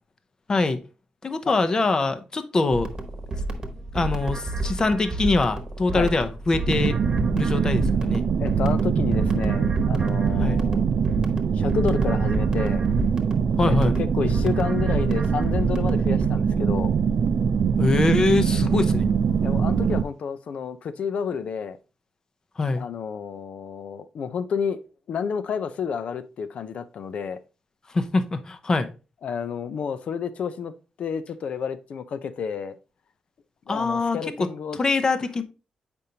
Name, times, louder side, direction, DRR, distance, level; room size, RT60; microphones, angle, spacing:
voice 1, 0.5-0.8 1.2-2.9 3.9-7.0 7.3-8.2 10.4-10.6 13.6-14.0 17.8-19.1 22.6-22.8 27.9-28.9 33.7-35.4, left 3 dB, 30° left, 0.7 m, -24 dB
sound 1, 2.7-16.3, right 2 dB, 35° right, 1.2 m, -30 dB
sound 2, 6.7-20.0, right 6 dB, 55° right, 0.4 m, -23 dB
voice 2, 8.4-10.8 11.5-12.9 13.6-16.9 19.4-21.8 22.8-24.8 25.1-27.4 29.2-30.7 31.0-32.7 33.7-34.8, left 6 dB, 65° left, 0.6 m, -30 dB
8.1 x 5.3 x 2.8 m
wide cardioid pair, 140°, 2 cm